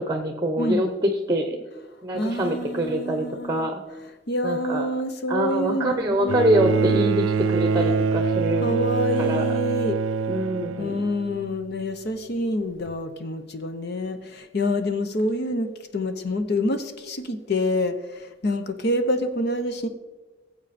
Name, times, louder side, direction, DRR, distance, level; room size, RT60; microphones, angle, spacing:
voice 1, 0.1-1.6 2.0-3.8 4.4-4.9 5.3-8.7 9.2-9.5 10.3-11.0, right 1 dB, 20° right, 6 dB, 0.9 m, -25 dB
voice 2, 2.1-3.7 4.3-7.1 8.6-10.0 10.8-19.9, left 1 dB, 55° left, 8 dB, 0.9 m, -27 dB
Bowed string instrument, 6.3-11.7 12.9-13.0, right 5 dB, 85° right, 0.5 m, -25 dB
17.5 x 7.7 x 4.3 m, 1.2 s
head